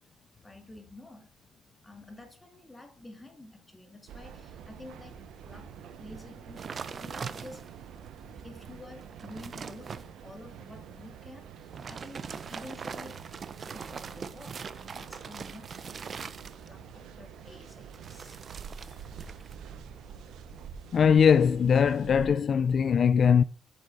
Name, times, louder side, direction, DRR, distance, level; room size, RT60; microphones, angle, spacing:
voice 1, 0.4-1.3 1.8-5.7 6.0-7.6 8.4-13.2 13.6-15.7 16.6-18.4, left 1 dB, 15° left, 2.3 m, -49 dB
sound 1, 4.1-22.3, right 8 dB, 80° right, 1.0 m, -47 dB
sound 2, 6.6-7.9 8.4-8.5 8.9-10.1 11.6-16.9 17.9-19.6 19.9-20.3, right 6 dB, 45° right, 0.7 m, -41 dB
voice 2, 20.9-23.4, left 7 dB, 50° left, 0.4 m, -21 dB
7.7 x 7.6 x 4.0 m
cardioid pair, 90°, 0 cm